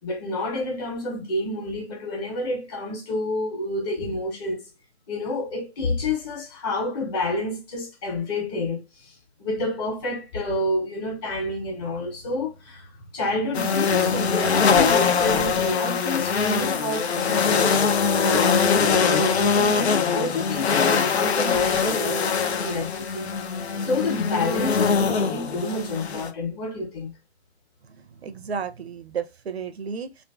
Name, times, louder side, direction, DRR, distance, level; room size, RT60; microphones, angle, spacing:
voice 1, 0.0-4.7 5.1-17.9 18.2-23.3 23.8-27.1, left 2 dB, 20° left, 0.9 m, -29 dB
sound 1, 13.5-26.3, left 6 dB, 75° left, 0.6 m, -22 dB
voice 2, 27.8-30.2, right 6 dB, 70° right, 0.6 m, -33 dB
3.6 x 2.5 x 2.3 m
figure-of-eight pair, 140°, 33 cm